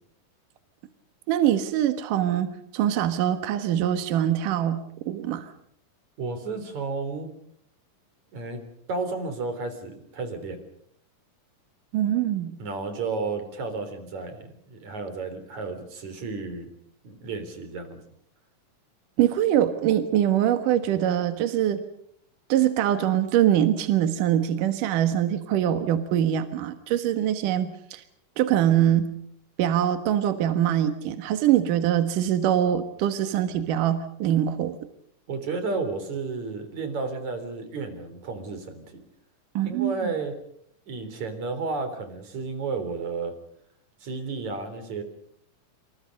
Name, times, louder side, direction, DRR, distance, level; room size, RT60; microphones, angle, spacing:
voice 1, 1.3-5.5 11.9-12.5 19.2-21.8 22.5-28.0 28.4-29.1 29.6-34.8 39.5-40.1, right 11 dB, 75° right, 9 dB, 2.9 m, -23 dB
voice 2, 6.2-7.3 8.3-8.6 8.9-10.6 12.6-16.7 17.0-18.0 35.3-39.0 39.6-40.4 40.9-43.3 44.0-45.0, right 4 dB, 60° right, 9 dB, 5.0 m, -32 dB
27.5 x 27.5 x 5.3 m, 0.68 s
omnidirectional pair, 3.8 m